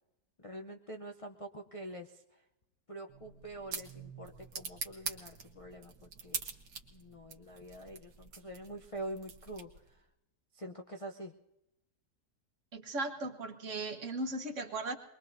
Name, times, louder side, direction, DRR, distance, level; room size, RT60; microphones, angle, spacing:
voice 1, 0.4-2.2 2.9-5.9 6.2-6.4 6.9-9.7 10.5-11.3, right 1 dB, 40° left, 2 dB, 0.4 m, -45 dB
sound 1, 3.1-10.0, right 6 dB, 90° right, 1.9 m, -45 dB
voice 2, 12.7-14.9, right 2 dB, 50° right, 7 dB, 1.4 m, -37 dB
23.0 x 22.0 x 2.7 m, 0.92 s
omnidirectional pair, 1.8 m